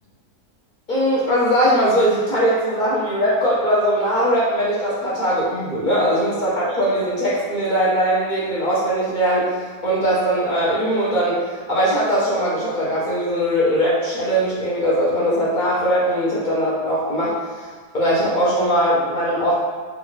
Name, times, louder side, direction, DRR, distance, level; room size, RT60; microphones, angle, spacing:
voice 1, 0.9-17.7 17.9-19.5, equal, 40° left, -8 dB, 0.7 m, -20 dB
3.5 x 2.4 x 3.1 m, 1.4 s
omnidirectional pair, 1.6 m